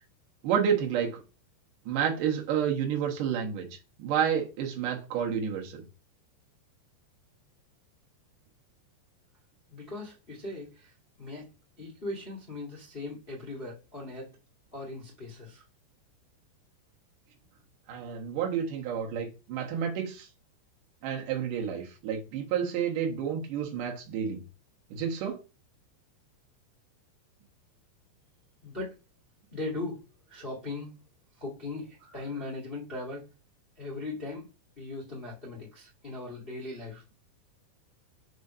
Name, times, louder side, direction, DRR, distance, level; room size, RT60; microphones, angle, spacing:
voice 1, 0.4-1.2 1.9-5.8 17.9-20.3 21.0-24.4 24.9-25.4, right 8 dB, 60° right, 2.4 m, -30 dB
voice 2, 9.7-10.9 11.2-11.5 11.8-14.3 14.7-15.6 28.6-28.9 29.5-30.0 30.3-30.9 31.4-33.2 33.8-34.5 34.8-37.0, left 2 dB, 35° left, 0.8 m, -39 dB
6.5 x 3.3 x 5.5 m
omnidirectional pair, 5.1 m